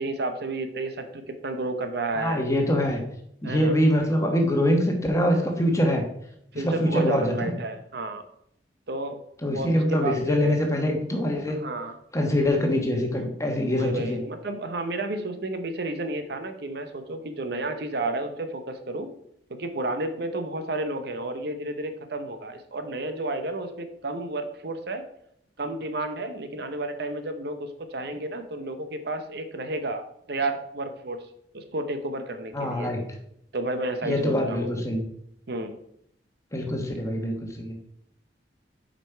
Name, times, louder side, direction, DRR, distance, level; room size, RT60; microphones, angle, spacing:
voice 1, 0.0-2.4 3.4-3.7 6.5-8.2 8.9-9.2 9.5-10.6 11.5-11.9 13.7-19.1 19.5-25.0 25.6-31.2 31.5-32.9 33.5-34.7 35.5-35.8, right 2 dB, 60° right, 8 dB, 0.8 m, -31 dB
voice 2, 2.1-3.0 3.4-6.1 6.6-7.5 9.4-11.6 12.1-14.2 32.5-33.1 34.0-35.0 36.5-37.8, equal, 15° left, 2 dB, 1.3 m, -24 dB
7.6 x 5.2 x 4.5 m, 0.72 s
head